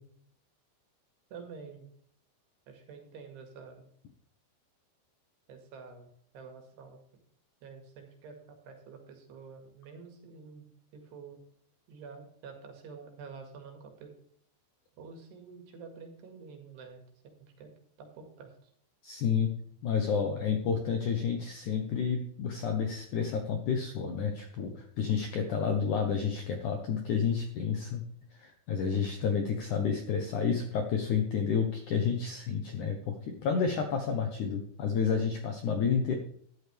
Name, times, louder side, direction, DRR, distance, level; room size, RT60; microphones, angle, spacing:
voice 1, 1.3-1.9 2.7-3.9 5.5-7.2 7.6-10.7 10.9-11.4 11.9-14.1 15.0-17.7 18.0-18.7, right 5 dB, 70° right, 4 dB, 3.9 m, -48 dB
voice 2, 19.0-19.5 19.8-28.0 28.4-36.2, left 6 dB, 90° left, 5 dB, 1.7 m, -30 dB
13.5 x 11.0 x 3.5 m, 0.63 s
omnidirectional pair, 5.3 m